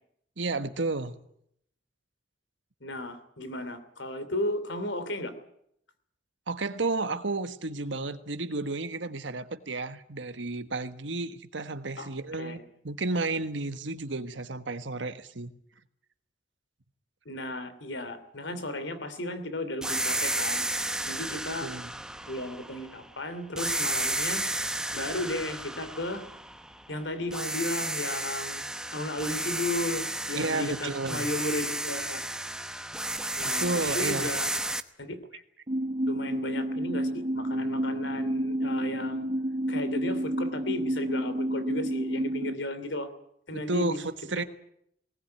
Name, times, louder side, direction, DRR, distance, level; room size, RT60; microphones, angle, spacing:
voice 1, 0.4-1.2 6.5-12.6 12.8-15.5 21.6-21.9 30.3-31.3 33.6-34.3 43.5-44.4, right 3 dB, 85° right, 10 dB, 1.5 m, -32 dB
voice 2, 2.8-5.3 12.0-12.1 12.4-12.6 17.2-20.6 21.1-21.7 22.3-24.4 24.9-26.2 26.9-28.6 28.9-32.2 33.4-34.5 35.0-35.4 36.1-39.3 39.7-43.1 43.5-44.0 44.4-44.5, left 1 dB, 85° left, 12 dB, 3.0 m, -34 dB
sound 1, 19.8-23.1 23.6-26.9 27.3-34.8, right 1 dB, 5° right, 0.9 m, -32 dB
sound 2, 35.7-42.5, right 1 dB, 35° right, 1.3 m, -30 dB
19.5 x 19.0 x 9.5 m, 0.72 s
head